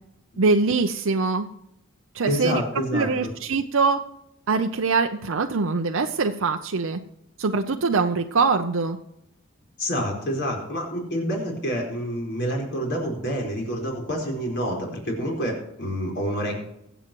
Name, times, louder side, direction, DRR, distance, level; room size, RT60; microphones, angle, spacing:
voice 1, 0.4-1.5 2.1-4.0 4.5-7.0 7.4-9.0, right 4 dB, 65° right, 5 dB, 0.6 m, -23 dB
voice 2, 2.3-3.3 9.8-16.6, equal, 55° left, 0 dB, 4.3 m, -28 dB
23.0 x 8.0 x 3.0 m, 0.81 s
head